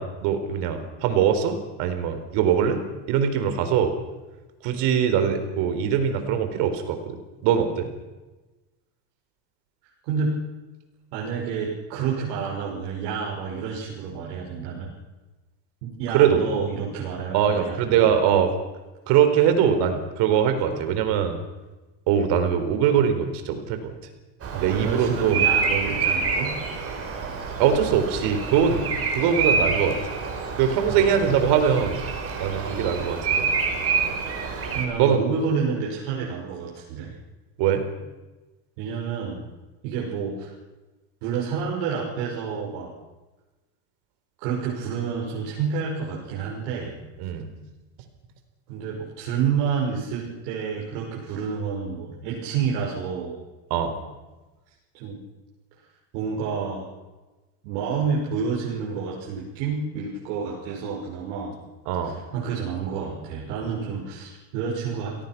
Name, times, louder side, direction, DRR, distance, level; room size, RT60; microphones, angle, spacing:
voice 1, 0.0-2.8 3.1-3.9 4.6-7.2 7.4-7.9 16.1-16.4 17.3-18.5 19.1-21.4 22.1-23.9 24.6-25.4 27.6-30.0 30.6-32.0 32.4-33.5 35.0-35.2 37.6-37.9 47.2-47.5 53.7-54.0 61.9-62.2, right 8 dB, 55° right, 8 dB, 4.4 m, -22 dB
voice 2, 10.0-10.4 11.1-14.9 15.8-18.1 24.5-26.5 30.9-31.4 32.5-32.8 34.7-37.1 38.8-39.4 39.8-40.5 41.2-42.9 44.4-47.0 48.7-53.3 54.9-55.2 56.1-56.8 57.6-61.6 62.0-65.2, right 6 dB, 75° right, -3 dB, 6.0 m, -29 dB
Bird vocalization bird call bird song, 24.4-34.8, right 5 dB, 30° right, 5.4 m, -27 dB
30.0 x 17.5 x 6.1 m, 1.2 s
supercardioid pair, 140°, 47 cm